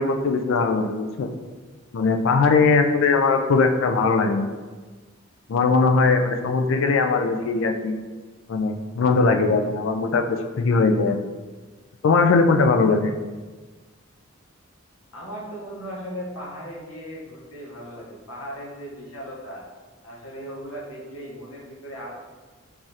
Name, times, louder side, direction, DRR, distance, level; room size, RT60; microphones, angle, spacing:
voice 1, 0.0-1.3 1.9-4.5 5.5-7.9 8.5-11.2 12.0-13.2, left 4 dB, 65° left, 5 dB, 0.3 m, -20 dB
voice 2, 15.1-19.6 20.0-22.1, equal, 85° left, -4 dB, 0.9 m, -37 dB
4.8 x 2.4 x 2.7 m, 1.3 s
head